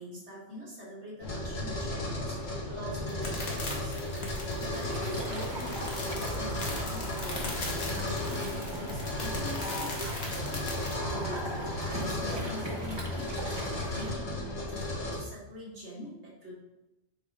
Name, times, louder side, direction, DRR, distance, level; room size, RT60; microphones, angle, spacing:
voice 1, 0.0-4.4 4.7-7.5 7.9-10.7 11.0-16.6, equal, 55° right, -4 dB, 2.2 m, -44 dB
sound 1, 1.2-15.2, left 1 dB, 70° left, 2.1 m, -34 dB
sound 2, 3.1-11.0, left 2 dB, 50° left, 1.4 m, -39 dB
Waves surf, 3.7-14.1, right 2 dB, 25° right, 0.7 m, -41 dB
7.0 x 4.4 x 3.7 m, 0.94 s
omnidirectional pair, 1.4 m